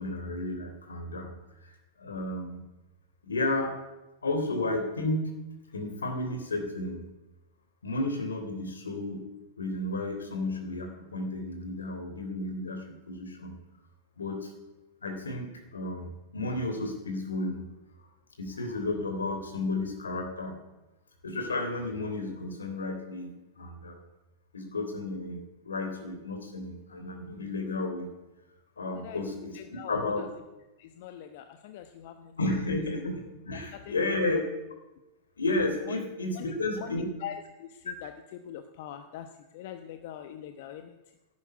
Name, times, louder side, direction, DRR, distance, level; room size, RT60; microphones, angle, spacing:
voice 1, 0.0-1.3 2.0-2.6 3.2-3.7 4.2-5.3 5.7-7.0 7.8-9.2 9.6-13.6 14.2-14.5 15.0-17.7 18.4-20.5 21.2-24.0 24.5-28.1 28.8-30.3 32.4-34.4 35.4-37.1, left 2 dB, 80° left, 5 dB, 3.3 m, -32 dB
voice 2, 28.9-30.3 30.8-32.4 33.5-34.4 35.9-36.0 36.3-41.0, left 10 dB, 55° left, 8 dB, 1.0 m, -43 dB
12.5 x 9.7 x 9.6 m, 1.0 s
figure-of-eight pair, 100°, 0 cm